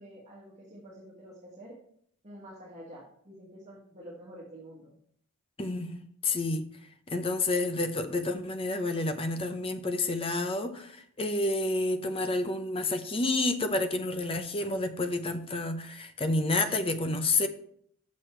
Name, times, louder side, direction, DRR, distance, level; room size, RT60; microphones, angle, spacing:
voice 1, 0.0-1.7 2.2-5.0, right 1 dB, 35° right, -5 dB, 1.5 m, -48 dB
voice 2, 5.6-6.7 7.1-17.5, left 2 dB, 25° left, 8 dB, 0.7 m, -29 dB
6.8 x 6.3 x 4.4 m, 0.66 s
head